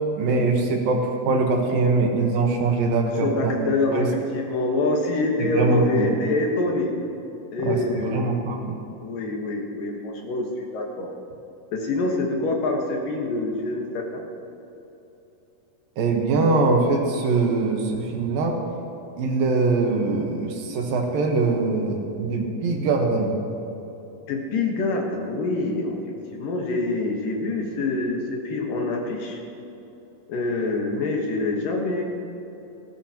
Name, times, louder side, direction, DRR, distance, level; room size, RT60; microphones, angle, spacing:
voice 1, 0.2-3.5 3.9-4.1 5.4-6.2 7.6-8.8 16.0-18.6 19.2-23.4, right 3 dB, 70° right, 1 dB, 2.8 m, -22 dB
voice 2, 3.2-6.9 7.5-8.3 9.0-11.1 11.7-14.2 24.3-26.0 26.3-29.4 30.3-32.0, left 2 dB, 65° left, 1 dB, 2.8 m, -25 dB
18.0 x 15.5 x 2.9 m, 3.0 s
omnidirectional pair, 4.4 m